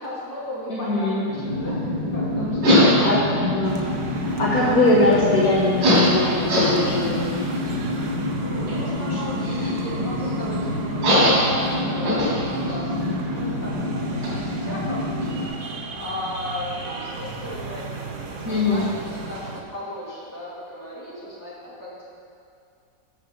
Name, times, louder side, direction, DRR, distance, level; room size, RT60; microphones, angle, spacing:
voice 1, 0.0-1.8 2.1-3.1 8.4-15.7 15.9-18.0 18.4-22.0, equal, 10° left, -9 dB, 2.5 m, -36 dB
voice 2, 0.7-1.3 3.0-3.9 4.2-7.2 9.0-9.3 13.0-13.1 18.4-18.9, left 2 dB, 55° left, -6 dB, 1.5 m, -22 dB
sound 1, 1.2-15.5, left 1 dB, 85° right, 3.2 m, -23 dB
sound 2, 3.6-19.6, right 3 dB, 50° right, 1.0 m, -35 dB
7.7 x 6.3 x 6.6 m, 2.4 s
omnidirectional pair, 2.0 m